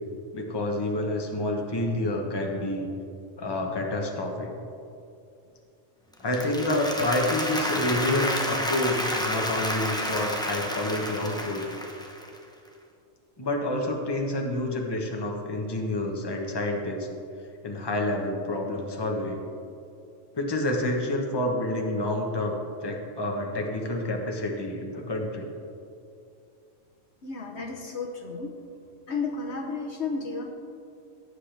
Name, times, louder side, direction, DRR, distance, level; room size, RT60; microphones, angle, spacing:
voice 1, 0.3-2.9 3.4-4.6 6.2-11.7 13.4-17.1 17.6-19.4 20.3-22.6 22.8-25.5, left 1 dB, 20° left, 1 dB, 1.1 m, -28 dB
Applause, 6.1-12.4, equal, 5° left, 0.7 m, -30 dB
voice 2, 27.2-28.5 29.1-30.5, left 4 dB, 60° left, 2 dB, 1.2 m, -32 dB
17.5 x 8.1 x 3.4 m, 2.5 s
omnidirectional pair, 1.4 m